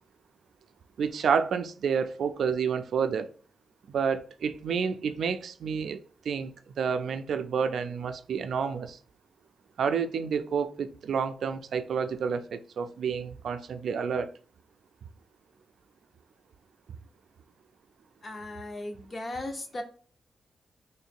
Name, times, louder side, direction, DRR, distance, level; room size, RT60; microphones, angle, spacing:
voice 1, 1.0-3.3 3.9-6.0 6.3-9.0 9.8-14.3, right 6 dB, 75° right, 0.4 m, -29 dB
voice 2, 18.2-19.8, left 1 dB, 30° left, 0.7 m, -37 dB
3.1 x 2.8 x 4.4 m
wide cardioid pair, 155°, 0 cm